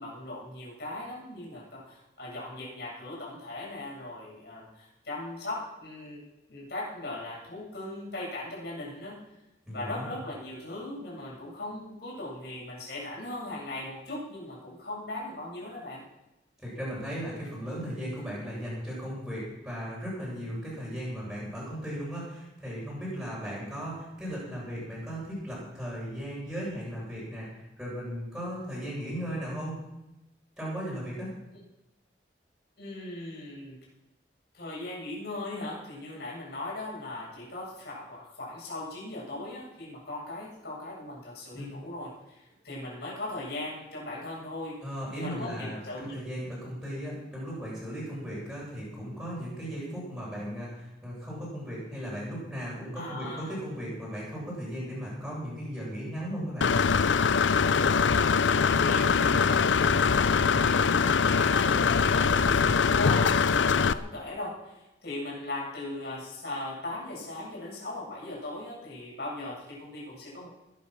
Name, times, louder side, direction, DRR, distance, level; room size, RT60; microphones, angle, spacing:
voice 1, 0.0-6.2 6.5-9.2 9.7-16.0 32.8-33.8 34.5-44.8 45.2-46.2 52.9-53.5 57.8-70.5, left 2 dB, 60° left, -5 dB, 7.9 m, -39 dB
voice 2, 9.6-10.1 16.6-29.8 30.6-31.3 41.5-41.8 44.8-56.7, equal, 5° right, -7 dB, 7.7 m, -36 dB
Engine / Mechanisms, 56.6-63.9, left 5 dB, 90° left, 0.6 m, -23 dB
20.5 x 10.5 x 6.2 m, 0.95 s
head